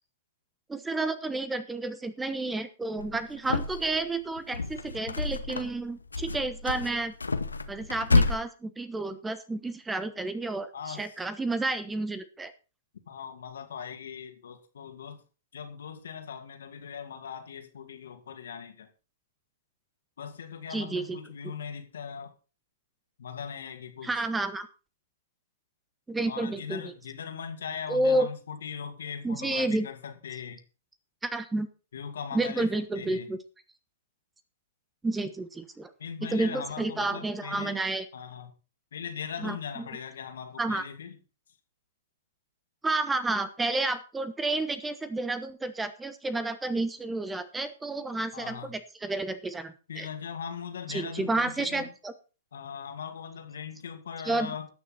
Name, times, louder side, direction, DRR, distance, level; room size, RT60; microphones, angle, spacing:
voice 1, 0.7-7.1 7.7-12.5 20.7-21.2 24.0-24.7 26.1-26.9 27.9-28.3 29.2-29.9 31.2-31.7 32.3-33.4 35.0-35.9 36.3-38.1 39.4-39.9 40.6-40.8 42.8-50.1 50.9-52.1 54.2-54.5, right 2 dB, 10° right, 13 dB, 1.1 m, -30 dB
sound 1, 3.0-4.0 4.4-5.8 6.1-8.4, left 3 dB, 85° left, 1.0 m, -28 dB
voice 2, 10.7-11.1 13.1-15.2 15.5-18.9 20.2-22.3 23.2-24.1 26.3-30.6 31.9-32.7 32.9-33.3 36.0-37.8 38.1-38.5 38.9-41.2 48.3-48.7 49.9-51.8 52.5-54.7, left 7 dB, 65° left, 6 dB, 2.3 m, -39 dB
19.0 x 6.8 x 4.2 m, 0.33 s
figure-of-eight pair, 110°, 0 cm